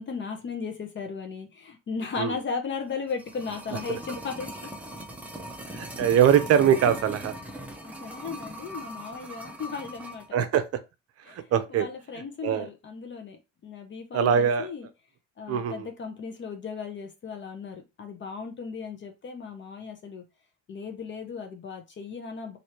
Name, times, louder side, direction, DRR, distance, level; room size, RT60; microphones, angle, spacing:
voice 1, 0.0-4.5 5.9-6.0 7.8-10.2 11.3-11.4 11.7-14.9 15.4-20.2 20.7-22.6, left 5 dB, 40° left, 0.9 m, -36 dB
sound 1, 2.9-10.3 10.6-10.7, equal, 5° right, 0.8 m, -40 dB
voice 2, 5.7-7.3 10.3-10.6 11.3-11.9 12.4-12.7 14.1-14.7 15.5-15.9, right 8 dB, 55° right, 0.7 m, -22 dB
3.1 x 2.7 x 4.4 m
cardioid pair, 120°, 29 cm